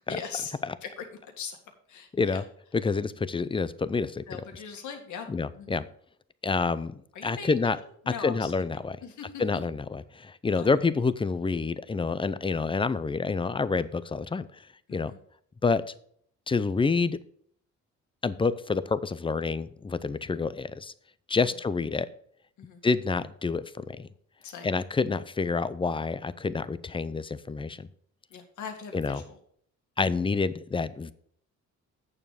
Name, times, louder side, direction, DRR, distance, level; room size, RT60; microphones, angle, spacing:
voice 1, 0.1-0.5 0.8-1.1 1.4-1.6 1.9-2.4 4.3-5.3 5.5-5.8 7.1-7.6 8.0-8.6 9.0-9.3 10.5-10.7 14.9-15.2 21.4-21.5 22.6-22.8 24.4-24.7 28.3-29.4, left 6 dB, 75° left, 4 dB, 2.0 m, -40 dB
voice 2, 2.7-4.2 5.3-5.8 6.4-7.8 8.1-9.0 9.4-14.5 14.9-15.1 15.6-15.8 16.5-17.2 18.2-20.9 21.3-22.1 22.8-24.1 24.6-27.9 28.9-29.2 30.0-31.1, left 4 dB, 15° left, 15 dB, 0.6 m, -28 dB
8.7 x 7.1 x 5.0 m, 0.64 s
cardioid pair, 90°, 30 cm